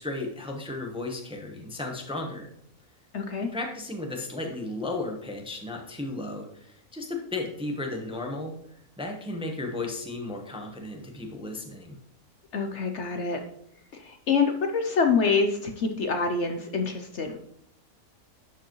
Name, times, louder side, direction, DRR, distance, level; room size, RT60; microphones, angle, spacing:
voice 1, 0.0-2.5 3.5-12.0, left 2 dB, 5° right, 2 dB, 0.8 m, -34 dB
voice 2, 3.1-3.5 12.5-13.4 13.9-17.4, left 5 dB, 60° left, 5 dB, 0.9 m, -26 dB
11.0 x 4.9 x 3.0 m, 0.74 s
omnidirectional pair, 1.6 m